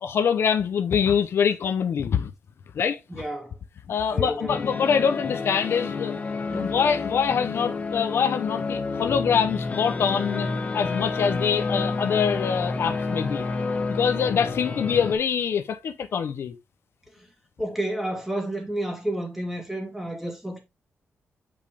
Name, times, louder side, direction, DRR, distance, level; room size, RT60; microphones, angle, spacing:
voice 1, 0.0-2.3 2.7-3.2 3.9-6.1 6.5-10.5 10.7-13.5 13.9-16.5, left 7 dB, 65° left, 0.7 m, -24 dB
voice 2, 3.1-3.5 4.1-5.1 6.5-6.8 17.6-20.6, right 1 dB, 5° right, 2.6 m, -31 dB
sound 1, 4.5-15.1, left 4 dB, 30° left, 1.2 m, -29 dB
8.9 x 5.2 x 3.5 m
wide cardioid pair, 160°, 5 cm